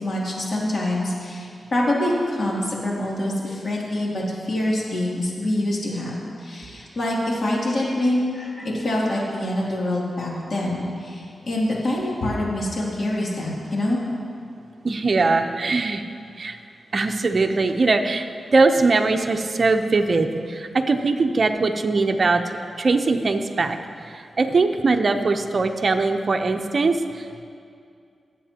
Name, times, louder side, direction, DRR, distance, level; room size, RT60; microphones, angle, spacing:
voice 1, 0.0-14.0, left 1 dB, 55° left, -4 dB, 2.7 m, -25 dB
voice 2, 14.8-16.0 16.4-16.6 16.9-18.3 18.5-22.4 22.8-23.8 24.1-27.4, right 3 dB, 55° right, 5 dB, 0.7 m, -21 dB
18.5 x 7.6 x 2.9 m, 2.4 s
cardioid pair, 65°, 0 cm